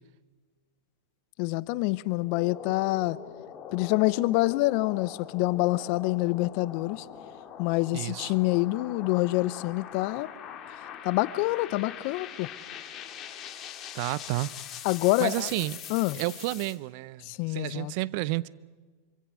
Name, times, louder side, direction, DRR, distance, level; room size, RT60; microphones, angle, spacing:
voice 1, 1.4-3.2 3.7-7.0 7.6-10.3 11.0-12.5 14.8-15.5 15.9-16.2 17.2-17.9, left 19 dB, 50° left, 0.7 m, -26 dB
sound 1, 2.2-16.8, left 9 dB, 35° left, 2.1 m, -43 dB
voice 2, 7.9-8.3 13.9-14.5 15.2-15.8 16.1-18.5, right 19 dB, 55° right, 0.6 m, -31 dB
25.0 x 24.5 x 6.2 m
hypercardioid pair, 100°, 0 cm